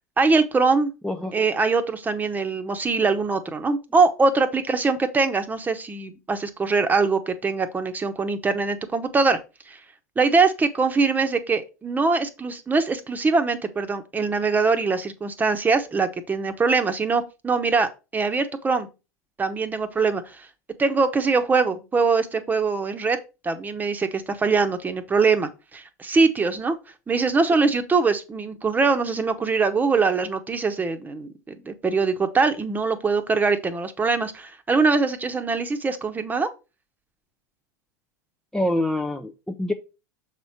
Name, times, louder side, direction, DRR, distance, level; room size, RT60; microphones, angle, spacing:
voice 1, 0.2-0.9 1.3-9.4 9.7-9.8 10.2-18.9 19.4-20.5 20.8-23.2 23.4-26.8 27.1-36.5, right 4 dB, 20° right, 1.1 m, -22 dB
voice 2, 1.0-1.4 38.5-39.7, left 1 dB, 5° left, 0.6 m, -25 dB
6.7 x 4.3 x 4.6 m
hypercardioid pair, 95°, 10 cm